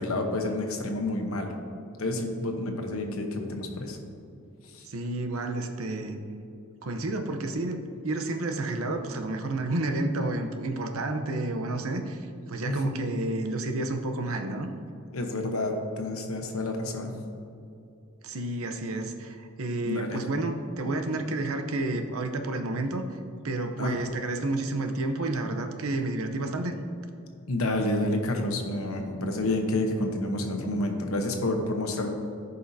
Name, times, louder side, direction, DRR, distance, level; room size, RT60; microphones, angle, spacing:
voice 1, 0.0-1.5 2.0-4.0 4.7-4.8 12.6-13.0 15.1-17.1 19.8-20.2 23.8-24.0 27.5-32.1, left 2 dB, 75° left, 3 dB, 1.0 m, -29 dB
voice 2, 4.8-6.2 6.8-7.8 8.0-14.7 18.2-23.1 23.4-26.8, right 2 dB, 75° right, 5 dB, 0.7 m, -30 dB
14.0 x 5.5 x 2.7 m, 2.6 s
head